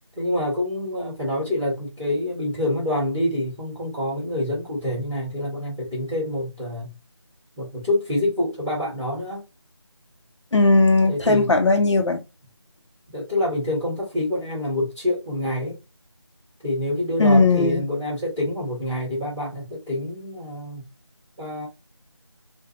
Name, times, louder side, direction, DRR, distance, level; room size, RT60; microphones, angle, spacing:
voice 1, 0.2-6.9 7.6-9.4 11.1-11.5 13.1-15.8 16.6-20.8 21.4-21.7, left 1 dB, 5° right, 0.6 m, -26 dB
voice 2, 10.5-12.2 17.2-17.8, left 3 dB, 80° left, 0.7 m, -17 dB
2.5 x 2.2 x 2.8 m
figure-of-eight pair, 175°, 15 cm